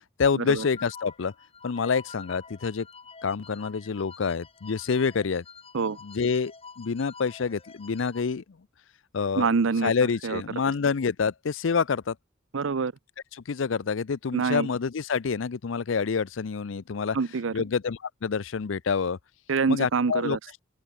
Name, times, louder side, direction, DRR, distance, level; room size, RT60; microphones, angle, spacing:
voice 1, 0.2-1.3 1.6-2.9 3.2-5.4 6.0-8.4 9.1-9.5 9.8-12.2 13.5-17.2 17.5-19.2 19.7-20.4, left 5 dB, 75° left, 0.5 m, -27 dB
sound 1, 0.6-8.2, left 5 dB, 30° left, 6.1 m, -48 dB
voice 2, 9.4-9.9 10.2-10.4 12.5-12.9 14.3-14.7 17.1-17.5 19.5-20.4, right 5 dB, 80° right, 0.6 m, -25 dB
open air
head